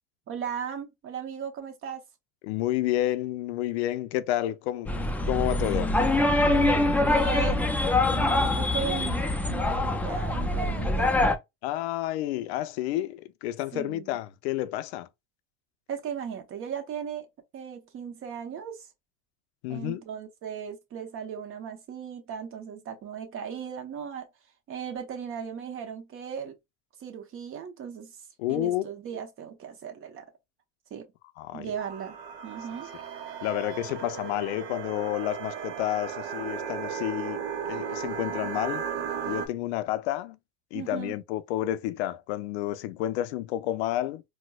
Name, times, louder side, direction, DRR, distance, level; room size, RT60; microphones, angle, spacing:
voice 1, 0.3-2.0 7.0-11.2 13.7-14.2 15.9-17.3 17.5-18.9 19.7-24.3 24.7-26.5 27.0-30.3 30.9-31.1 31.5-32.2 32.4-32.9 40.7-41.1, right 7 dB, 40° right, 1.0 m, -37 dB
voice 2, 2.4-6.0 11.6-15.1 19.6-20.0 28.4-28.8 31.4-31.7 33.4-38.9 39.2-40.4 40.7-44.2, left 14 dB, 90° left, 0.5 m, -30 dB
sound 1, 4.9-11.4, left 2 dB, 5° left, 0.3 m, -24 dB
sound 2, 31.8-39.5, right 7 dB, 85° right, 0.9 m, -35 dB
4.2 x 2.1 x 2.3 m
supercardioid pair, 110°, 32 cm